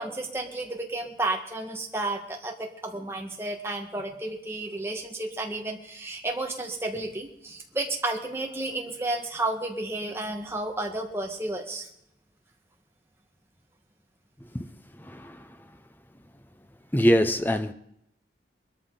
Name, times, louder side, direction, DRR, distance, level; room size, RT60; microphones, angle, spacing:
voice 1, 0.0-11.9, right 2 dB, 15° right, 1.8 m, -32 dB
voice 2, 14.9-15.7 16.9-17.7, equal, 10° left, 0.7 m, -24 dB
21.5 x 13.5 x 4.0 m
head